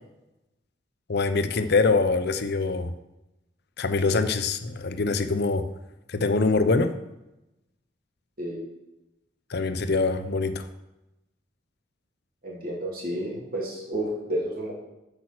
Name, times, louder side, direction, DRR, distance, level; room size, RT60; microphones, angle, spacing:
voice 1, 1.1-2.9 3.8-5.6 6.1-6.9 9.5-10.6, left 3 dB, 60° left, 10 dB, 0.7 m, -24 dB
voice 2, 12.4-14.7, right 1 dB, 50° right, -4 dB, 3.0 m, -31 dB
8.6 x 6.2 x 6.1 m, 0.95 s
head